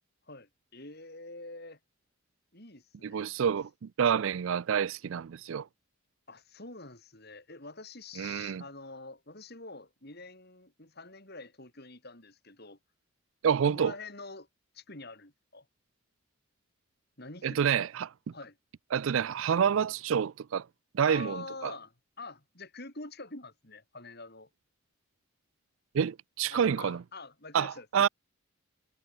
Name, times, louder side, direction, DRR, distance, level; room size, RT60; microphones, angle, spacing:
voice 1, 0.3-1.8 2.5-3.3 6.3-12.8 13.6-14.5 14.7-15.7 17.2-17.9 18.3-18.6 21.0-24.5 26.5-27.9, left 3 dB, 50° left, 5.3 m, -46 dB
voice 2, 3.0-5.7 8.2-8.6 13.4-13.9 17.4-18.3 18.9-20.7 20.9-21.7 25.9-27.0 27.5-28.1, right 7 dB, 65° right, 0.4 m, -28 dB
head